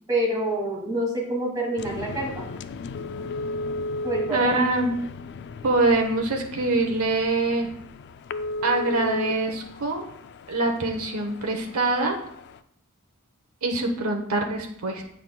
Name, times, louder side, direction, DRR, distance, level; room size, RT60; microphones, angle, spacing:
voice 1, 0.1-2.5 4.0-4.6, right 1 dB, 15° right, -3 dB, 2.1 m, -27 dB
sound 1, 1.8-12.6, left 2 dB, 50° left, 0.3 m, -35 dB
voice 2, 4.3-4.9 5.6-7.7 8.6-10.1 10.5-12.2 13.6-15.0, right 2 dB, 75° right, 3 dB, 0.9 m, -24 dB
8.5 x 5.8 x 2.2 m, 0.70 s
head